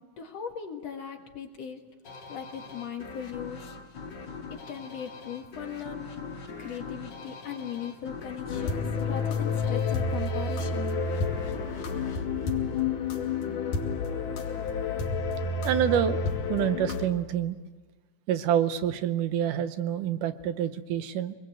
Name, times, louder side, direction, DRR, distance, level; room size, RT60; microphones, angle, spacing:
voice 1, 0.0-1.8 2.3-3.7 4.5-11.0, left 8 dB, 55° left, 3 dB, 2.8 m, -39 dB
sound 1, 2.0-13.3, left 4 dB, 40° left, 2.1 m, -42 dB
sound 2, 8.5-17.1, left 4 dB, 85° left, 3.6 m, -29 dB
voice 2, 15.6-16.2 16.5-17.6 18.3-21.3, right 10 dB, 80° right, 10 dB, 2.5 m, -27 dB
25.0 x 21.0 x 7.8 m, 1.3 s
omnidirectional pair, 3.6 m